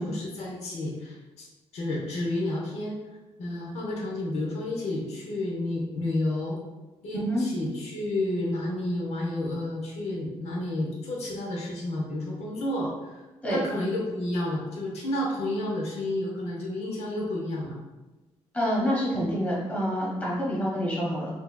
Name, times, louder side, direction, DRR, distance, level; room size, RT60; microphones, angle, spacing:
voice 1, 0.0-1.4 1.7-3.0 3.4-6.6 7.0-13.2 13.5-17.8, left 1 dB, 75° left, -2 dB, 0.8 m, -31 dB
voice 2, 7.1-7.4 13.4-13.6 18.5-21.3, equal, 10° left, -6 dB, 1.2 m, -27 dB
4.4 x 2.7 x 2.3 m, 1.1 s
cardioid pair, 140°, 11 cm